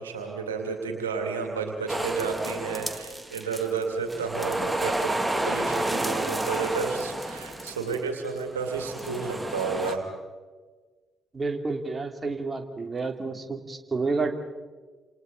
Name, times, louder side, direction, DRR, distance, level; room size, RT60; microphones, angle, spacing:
voice 1, 0.0-5.1 5.5-10.1, right 5 dB, 90° right, 3 dB, 2.5 m, -31 dB
sound 1, 1.9-3.8 4.1-8.0 8.7-9.9, right 1 dB, 15° right, 2.5 m, -30 dB
voice 2, 11.3-14.3, right 3 dB, 30° right, 3 dB, 2.9 m, -30 dB
29.0 x 28.5 x 4.0 m, 1.4 s
hypercardioid pair, 45°, 0 cm